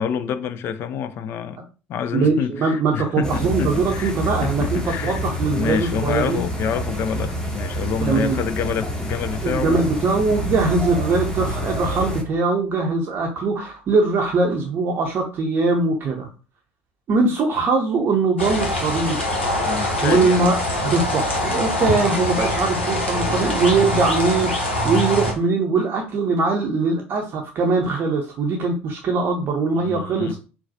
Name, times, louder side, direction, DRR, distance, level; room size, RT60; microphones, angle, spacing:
voice 1, 0.0-1.6 1.9-4.1 4.4-5.2 5.5-9.9 19.6-20.5 29.8-30.4, left 7 dB, 40° left, 0.3 m, -27 dB
voice 2, 2.1-6.4 8.0-8.4 9.4-16.3 17.1-19.2 20.0-30.4, right 3 dB, 35° right, 0.6 m, -21 dB
sound 1, 3.2-12.2, equal, 10° left, 1.0 m, -27 dB
sound 2, 18.4-25.3, left 1 dB, 80° left, 0.9 m, -23 dB
3.8 x 2.2 x 2.6 m
figure-of-eight pair, 65°, 6 cm